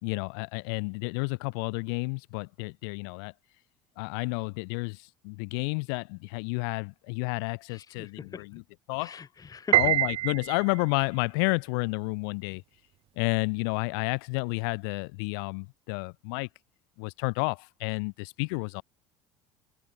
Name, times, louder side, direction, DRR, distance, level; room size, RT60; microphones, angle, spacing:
voice 1, 0.0-3.3 4.0-8.6 8.9-9.2 9.8-12.6 13.2-16.5 17.0-18.8, left 35 dB, 65° left, 4.8 m, -31 dB
voice 2, 7.7-8.4 9.0-9.9, left 6 dB, 30° left, 3.5 m, -42 dB
Piano, 9.7-11.0, right 14 dB, 45° right, 1.0 m, -25 dB
figure-of-eight pair, 65°, 13 cm